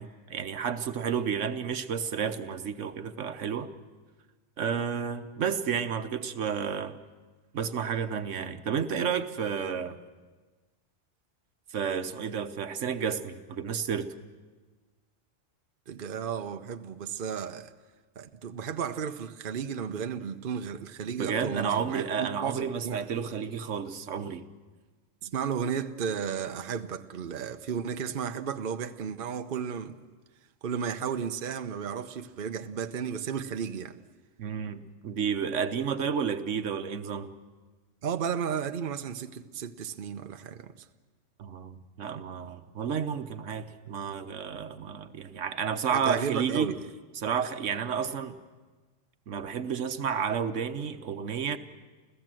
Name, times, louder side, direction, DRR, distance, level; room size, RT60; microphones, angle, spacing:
voice 1, 0.0-3.7 4.6-7.0 7.5-10.0 11.7-14.1 21.2-24.5 34.4-37.3 41.4-46.7 47.1-48.4 49.3-51.6, right 7 dB, 75° right, 1.3 m, -31 dB
voice 2, 15.9-17.7 18.2-23.0 25.2-30.0 30.6-34.0 38.0-40.7 45.9-46.9, right 7 dB, 50° right, 0.9 m, -33 dB
29.0 x 15.5 x 7.7 m
omnidirectional pair, 1.3 m